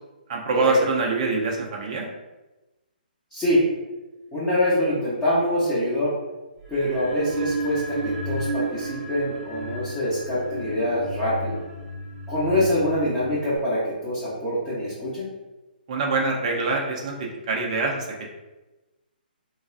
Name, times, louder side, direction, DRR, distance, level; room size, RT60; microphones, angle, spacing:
voice 1, 0.3-2.1 15.9-17.1 17.5-18.1, right 3 dB, 45° right, 0 dB, 0.6 m, -24 dB
voice 2, 4.3-6.1 6.7-11.6 12.3-15.3, left 1 dB, 10° left, -14 dB, 0.9 m, -25 dB
sound 1, 6.6-13.6, right 1 dB, 25° right, 1.3 m, -32 dB
3.2 x 2.3 x 2.4 m, 1.1 s
figure-of-eight pair, 135°, 5 cm